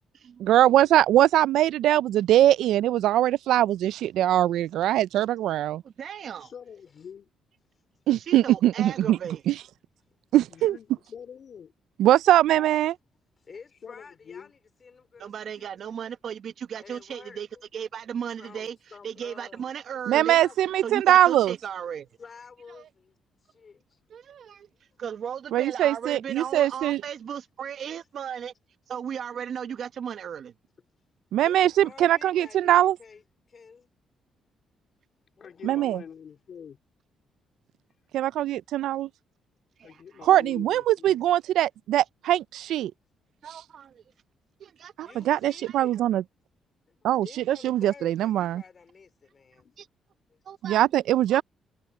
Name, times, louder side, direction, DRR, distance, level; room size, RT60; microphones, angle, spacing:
voice 1, 0.4-5.8 8.1-9.2 9.5-9.6 10.3-10.8 12.0-12.9 20.1-21.5 25.5-27.0 31.3-33.0 35.6-36.0 38.1-39.1 40.2-42.9 45.0-46.2 47.0-48.6 50.6-51.4, right 13 dB, 80° right, 0.3 m, -22 dB
voice 2, 5.8-6.5 8.3-9.4 15.2-17.5 17.7-18.8 19.0-20.4 20.8-22.1 22.7-22.9 24.1-24.7 25.0-28.5 28.9-30.5 39.8-40.2 43.4-44.0 44.6-45.7 49.8-49.9 50.4-50.9 51.3-51.4, right 8 dB, 60° right, 1.2 m, -36 dB
voice 3, 6.4-7.3 9.0-9.2 10.5-11.7 13.8-14.5 35.4-36.8 39.8-41.2 49.6-49.7, left 7 dB, 55° left, 2.6 m, -45 dB
voice 4, 13.4-15.9 16.8-17.6 18.4-19.7 20.3-20.7 22.2-24.0 31.4-33.2 33.5-33.9 35.4-36.0 45.0-46.0 46.9-49.7 50.3-50.4, left 5 dB, 40° left, 4.0 m, -50 dB
cardioid pair, 90°, 0 cm